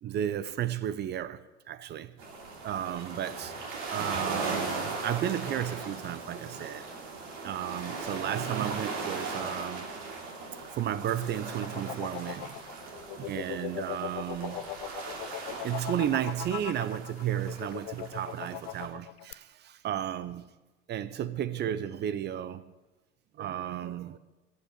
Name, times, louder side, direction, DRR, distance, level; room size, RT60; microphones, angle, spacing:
voice 1, 0.0-2.1 2.6-3.5 3.9-6.9 7.4-9.9 10.7-12.6 13.2-14.7 15.6-20.5 20.9-22.7 23.4-24.2, right 11 dB, 30° right, 0.6 m, -33 dB
sound 1, 2.2-18.9, right 3 dB, 55° right, 2.9 m, -38 dB
sound 2, 10.8-19.3, left 20 dB, 40° left, 0.4 m, -40 dB
14.0 x 5.7 x 9.2 m
figure-of-eight pair, 75°, 37 cm